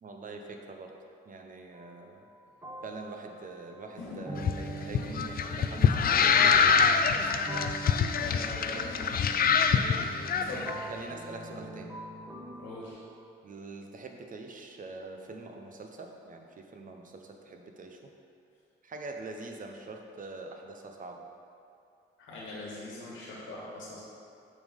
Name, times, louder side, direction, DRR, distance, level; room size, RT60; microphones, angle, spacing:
voice 1, 0.0-0.9 1.3-2.3 2.8-6.9 7.2-7.3 8.7-8.9 10.9-11.9 13.4-18.0 18.8-21.3, right 3 dB, 40° right, 3 dB, 1.0 m, -44 dB
sound 1, 1.7-2.0 2.6-12.9, right 2 dB, 10° right, 1.3 m, -42 dB
sound 2, 4.4-10.7, left 6 dB, 50° left, 0.5 m, -25 dB
voice 2, 8.1-9.1 9.7-9.8 10.4-10.7 12.6-13.0 22.2-24.0, left 2 dB, 75° left, -6 dB, 1.8 m, -42 dB
7.0 x 5.4 x 5.3 m, 2.5 s
cardioid pair, 90°, 20 cm